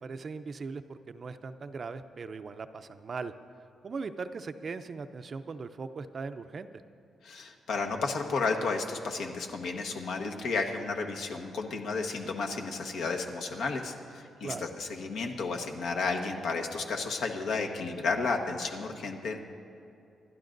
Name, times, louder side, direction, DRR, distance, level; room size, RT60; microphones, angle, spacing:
voice 1, 0.0-3.3 3.8-6.7 14.4-14.6, right 4 dB, 40° right, 11 dB, 0.5 m, -39 dB
voice 2, 7.2-19.4, left 4 dB, 80° left, 2 dB, 1.2 m, -32 dB
26.5 x 12.0 x 2.6 m, 2.6 s
cardioid pair, 125°, 0 cm